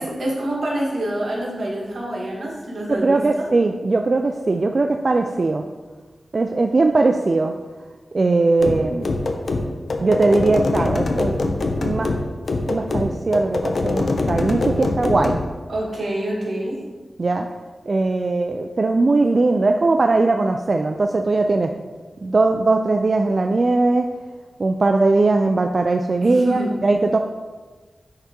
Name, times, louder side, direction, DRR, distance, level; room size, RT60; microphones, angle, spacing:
voice 1, 0.0-3.5 15.7-16.8 26.2-26.7, right 1 dB, 80° right, -4 dB, 1.6 m, -26 dB
voice 2, 2.9-5.7 6.3-7.5 8.1-9.1 10.0-11.4 11.8-12.1 12.7-15.4 17.2-17.5 17.9-21.7 22.2-24.1 24.6-27.2, right 3 dB, 50° right, 5 dB, 0.3 m, -19 dB
sound 1, 8.6-15.5, left 2 dB, 70° left, 0.6 m, -23 dB
10.0 x 3.5 x 2.9 m, 1.3 s
wide cardioid pair, 80°, 0 cm